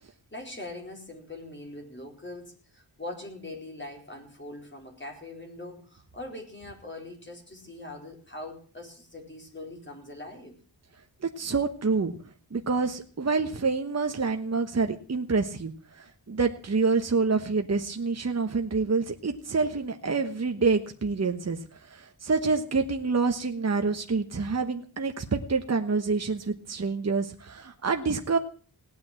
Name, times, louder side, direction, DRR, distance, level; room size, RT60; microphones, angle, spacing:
voice 1, 0.3-10.6, left 2 dB, 25° left, 2 dB, 4.3 m, -42 dB
voice 2, 11.2-12.1 12.5-28.4, right 4 dB, 40° right, 5 dB, 1.3 m, -27 dB
17.5 x 9.5 x 7.6 m, 0.41 s
wide cardioid pair, 120°, 42 cm